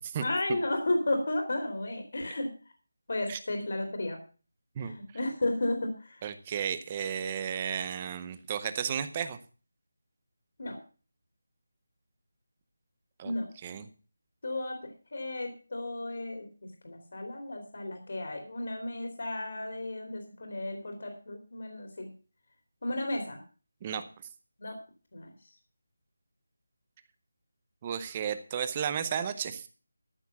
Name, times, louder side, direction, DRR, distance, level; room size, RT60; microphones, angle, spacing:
voice 1, 0.2-2.5 3.1-4.2 4.8-6.2 10.6-10.8 13.2-13.5 14.4-22.1 22.8-23.4 24.6-24.8 25.1-25.3, left 1 dB, 45° left, 3 dB, 3.1 m, -33 dB
voice 2, 6.2-9.4 13.2-13.3 13.6-13.8 23.8-24.0 27.8-29.7, right 8 dB, 15° right, 12 dB, 0.7 m, -33 dB
13.5 x 7.1 x 7.1 m, 0.37 s
figure-of-eight pair, 180°, 0 cm